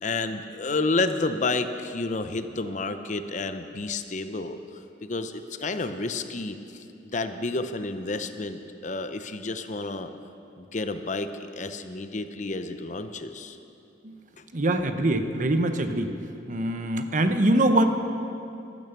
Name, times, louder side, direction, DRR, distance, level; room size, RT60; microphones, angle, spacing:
voice 1, 0.0-4.6 5.0-6.6 7.1-10.1 10.6-13.6 17.3-17.4, left 3 dB, 40° left, 9 dB, 0.7 m, -30 dB
voice 2, 14.5-16.1 16.5-17.9, right 1 dB, 45° right, 7 dB, 0.9 m, -23 dB
14.5 x 12.5 x 6.8 m, 2.6 s
head